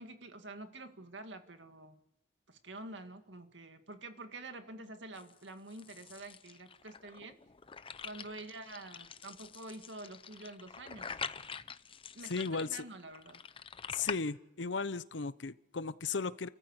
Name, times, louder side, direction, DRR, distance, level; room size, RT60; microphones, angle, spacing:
voice 1, 0.0-2.0 2.5-7.4 8.0-11.2 12.2-13.4, right 2 dB, 85° right, 7 dB, 2.1 m, -48 dB
sound 1, 5.2-14.2, left 6 dB, 30° left, 0.7 m, -45 dB
voice 2, 12.3-12.7 13.9-16.5, left 4 dB, 90° left, 15 dB, 0.8 m, -36 dB
30.0 x 14.5 x 8.2 m, 0.91 s
head